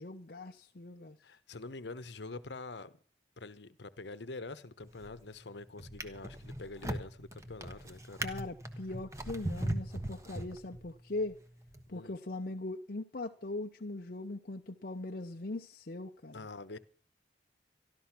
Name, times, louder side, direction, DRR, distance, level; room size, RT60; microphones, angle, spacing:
voice 1, 0.0-1.2 8.2-11.4 11.9-16.5, left 2 dB, 55° left, 0.7 m, -40 dB
voice 2, 1.2-3.0 3.4-8.2 11.9-12.2 16.3-16.8, left 3 dB, 75° left, 1.0 m, -45 dB
Drawer open or close, 4.8-5.2 5.8-11.0 11.7-11.8, right 1 dB, 15° right, 1.1 m, -39 dB
13.5 x 12.5 x 6.0 m
head